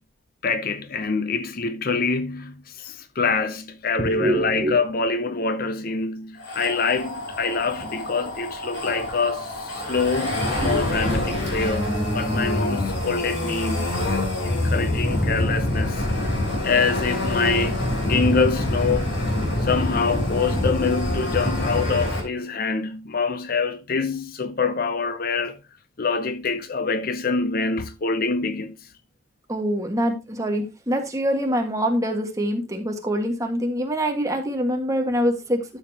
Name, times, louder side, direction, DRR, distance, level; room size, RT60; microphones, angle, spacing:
voice 1, 0.4-16.1 16.6-19.1 19.6-25.6 26.0-28.8, left 4 dB, 50° left, 0.7 m, -25 dB
voice 2, 4.0-4.8 29.5-35.6, equal, 15° right, 1.6 m, -24 dB
sound 1, 6.4-22.2, left 1 dB, 65° left, 3.8 m, -26 dB
12.0 x 7.0 x 2.9 m
head